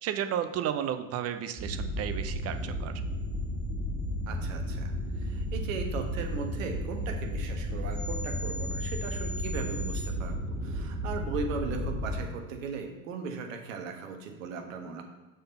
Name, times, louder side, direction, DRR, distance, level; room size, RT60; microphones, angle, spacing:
voice 1, 0.0-2.9, right 9 dB, 35° right, 9 dB, 0.7 m, -33 dB
sound 1, 1.6-12.2, equal, 10° right, 2.4 m, -33 dB
voice 2, 4.3-15.0, right 5 dB, 70° right, 4 dB, 1.4 m, -38 dB
6.5 x 4.2 x 5.4 m, 1.2 s
hypercardioid pair, 85°, 40 cm